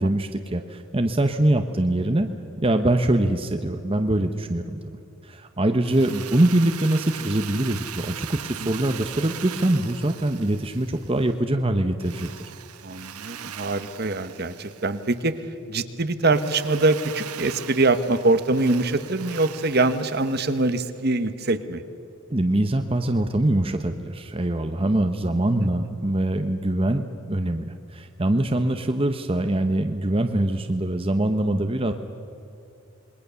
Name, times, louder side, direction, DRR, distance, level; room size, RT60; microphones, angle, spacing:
voice 1, 0.0-2.3 2.6-4.8 5.2-12.5 22.3-31.9, right 1 dB, 25° right, 6 dB, 0.8 m, -23 dB
Drill, 5.8-11.3 12.0-15.3 16.3-21.1, right 10 dB, 90° right, 1.1 m, -40 dB
voice 2, 12.8-15.3 15.7-21.8 25.6-25.7, right 2 dB, 45° right, 11 dB, 1.1 m, -23 dB
27.5 x 21.5 x 6.9 m, 2.7 s
head